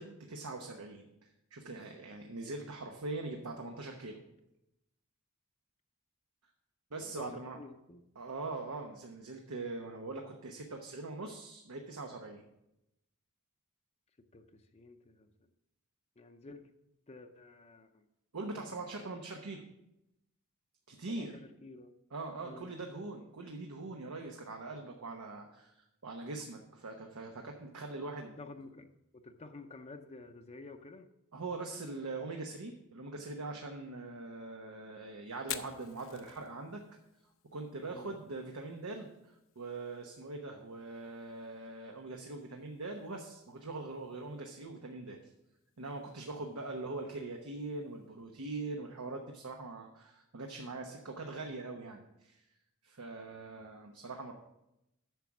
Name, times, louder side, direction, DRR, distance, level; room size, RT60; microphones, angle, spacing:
voice 1, 0.0-4.2 6.9-7.6 8.2-12.4 18.3-19.6 20.9-21.4 22.1-28.4 31.3-36.8 37.5-45.2 45.8-52.4 52.8-54.3, right 3 dB, 90° right, 3 dB, 1.0 m, -42 dB
voice 2, 7.0-8.0 14.3-15.3 16.2-16.6 17.1-18.0 19.6-19.7 21.1-21.9 22.4-22.7 28.4-31.1 37.8-38.2 46.7-46.9 53.3-53.6, left 3 dB, 30° left, 6 dB, 0.6 m, -51 dB
Fire, 35.4-49.2, left 11 dB, 65° left, 0.7 m, -53 dB
9.1 x 6.2 x 5.9 m, 0.86 s
head